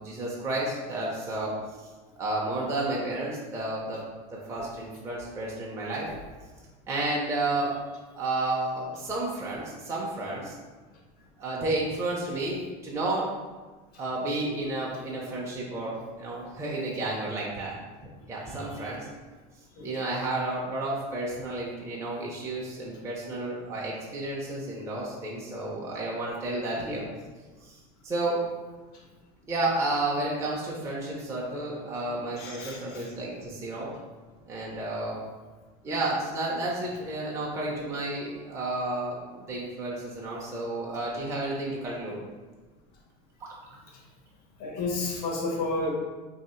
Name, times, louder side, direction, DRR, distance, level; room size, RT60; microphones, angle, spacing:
voice 1, 0.0-1.5 2.2-4.0 4.3-6.1 6.9-7.8 8.2-10.5 11.4-13.3 14.0-17.8 18.3-19.1 19.8-27.1 27.6-28.4 29.5-33.9 34.5-35.2 35.8-42.2 43.4-43.5, right 2 dB, 15° right, -4 dB, 0.5 m, -31 dB
voice 2, 18.4-18.9 19.8-20.0 26.8-26.9 28.9-29.0 32.4-33.1 35.8-36.0 37.4-37.5 43.9-44.0 44.6-45.9, left 2 dB, 85° left, -2 dB, 1.0 m, -34 dB
2.9 x 2.7 x 4.2 m, 1.3 s
cardioid pair, 150°, 19 cm